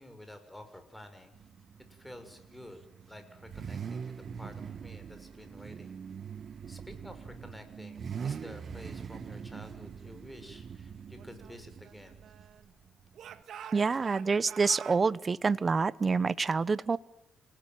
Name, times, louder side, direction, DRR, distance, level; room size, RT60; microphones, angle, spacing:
voice 1, 0.0-1.3 1.9-2.8 3.1-5.9 6.7-12.2, left 1 dB, 5° left, 7 dB, 6.4 m, -50 dB
Car / Idling / Accelerating revving vroom, 1.3-13.4, right 7 dB, 50° right, 1.2 m, -43 dB
Speech / Shout, 11.2-12.7 13.1-15.0, right 9 dB, 70° right, 2.0 m, -48 dB
voice 2, 13.7-17.0, right 4 dB, 35° right, 18 dB, 0.9 m, -27 dB
28.5 x 18.5 x 9.2 m, 0.88 s
cardioid pair, 90°, 0 cm